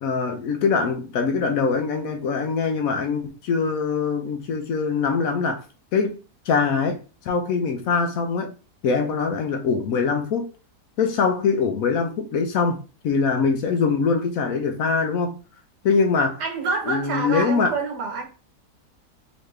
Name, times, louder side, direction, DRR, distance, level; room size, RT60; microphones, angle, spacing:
voice 1, 0.0-5.6 5.9-6.2 6.5-7.0 7.2-8.5 8.8-10.5 11.0-15.4 15.8-16.4 16.9-17.7, left 5 dB, 65° left, 1.0 m, -23 dB
voice 2, 16.4-18.3, right 4 dB, 90° right, 1.6 m, -27 dB
4.1 x 3.0 x 3.1 m
omnidirectional pair, 1.7 m